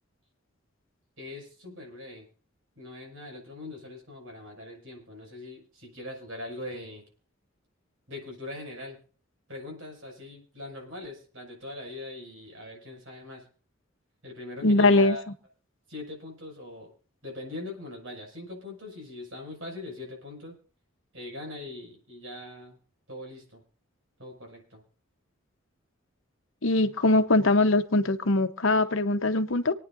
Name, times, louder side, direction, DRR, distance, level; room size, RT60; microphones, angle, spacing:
voice 1, 1.2-2.3 2.8-7.0 8.1-9.0 9.5-13.5 14.2-15.2 15.9-16.9 17.2-20.6 21.1-22.8 23.1-23.6 24.2-24.8, left 2 dB, 70° right, 1 dB, 6.3 m, -41 dB
voice 2, 14.6-15.2 26.6-29.7, left 2 dB, 70° left, 9 dB, 1.0 m, -22 dB
26.0 x 9.5 x 2.6 m, 0.41 s
head